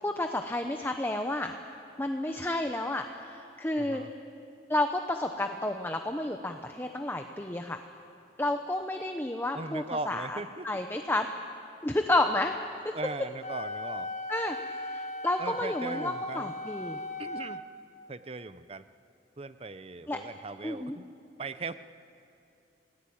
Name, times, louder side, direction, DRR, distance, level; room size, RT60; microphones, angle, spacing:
voice 1, 0.0-1.5 2.0-4.0 4.7-7.8 8.4-11.3 11.8-12.5 12.8-12.9 14.3-17.0 20.1-20.2 20.6-21.0, left 1 dB, 10° left, 5 dB, 0.8 m, -31 dB
voice 2, 3.8-4.1 9.5-10.7 12.9-14.1 15.4-16.5 17.2-17.6 18.1-18.9 19.4-21.0 21.4-21.7, right 3 dB, 35° right, 13 dB, 0.7 m, -39 dB
Wind instrument woodwind instrument, 13.4-17.6, left 2 dB, 40° left, 1.4 m, -37 dB
29.0 x 18.5 x 8.7 m, 2.7 s
head